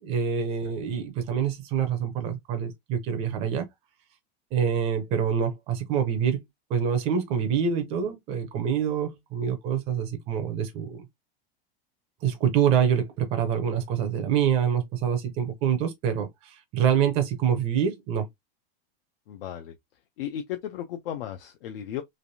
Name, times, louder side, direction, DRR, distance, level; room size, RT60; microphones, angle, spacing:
voice 1, 0.0-3.7 4.5-6.4 6.7-11.1 12.2-18.3, right 8 dB, 20° right, 0.5 m, -26 dB
voice 2, 19.3-19.7 20.2-22.0, left 10 dB, 70° left, 0.6 m, -35 dB
3.3 x 2.4 x 2.6 m
supercardioid pair, 175°, 29 cm